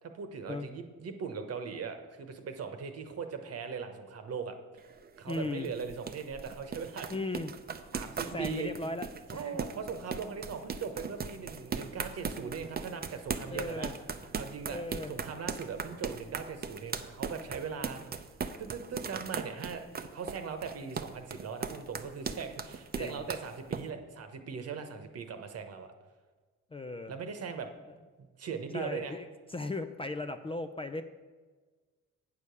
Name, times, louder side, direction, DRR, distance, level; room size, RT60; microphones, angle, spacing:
voice 1, 0.0-4.6 5.2-7.1 7.9-8.7 9.3-13.9 14.3-14.8 15.1-18.0 18.6-19.9 20.1-25.9 27.1-27.7 28.2-29.2, right 6 dB, 55° right, 7 dB, 1.1 m, -39 dB
sound 1, 4.8-23.8, right 5 dB, 30° right, 0.6 m, -38 dB
voice 2, 5.3-5.7 7.1-7.5 8.3-9.5 13.5-13.9 14.7-15.1 23.0-23.3 26.7-27.1 28.7-31.0, left 2 dB, 20° left, 8 dB, 0.4 m, -37 dB
8.4 x 4.9 x 6.8 m, 1.4 s
cardioid pair, 90°, 30 cm